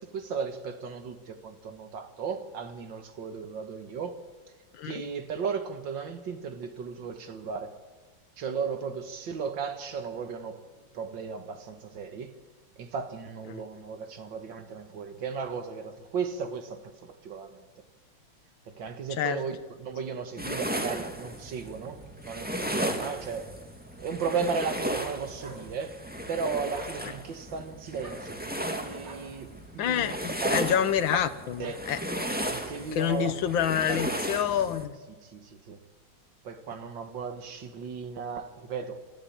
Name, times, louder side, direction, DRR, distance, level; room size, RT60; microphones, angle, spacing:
voice 1, 0.1-4.2 4.8-7.8 8.4-10.6 10.9-12.4 12.8-17.6 18.7-23.5 24.0-26.0 26.3-30.2 30.4-30.8 31.6-31.8 32.5-33.4 33.9-34.0 35.2-35.8 36.4-39.0, right 5 dB, 75° right, 2.3 m, -35 dB
sound 1, 20.4-34.8, right 1 dB, 5° right, 1.7 m, -35 dB
sound 2, 24.3-24.5 25.4-25.6 26.6-26.9 28.0-28.2 29.0-29.3 29.9-30.1 31.1-31.3 31.6-31.8 32.1-32.3, right 2 dB, 45° right, 3.7 m, -45 dB
voice 2, 29.8-30.1 30.5-32.0 32.9-34.9, left 9 dB, 85° left, 1.7 m, -27 dB
26.5 x 14.0 x 8.8 m
omnidirectional pair, 2.1 m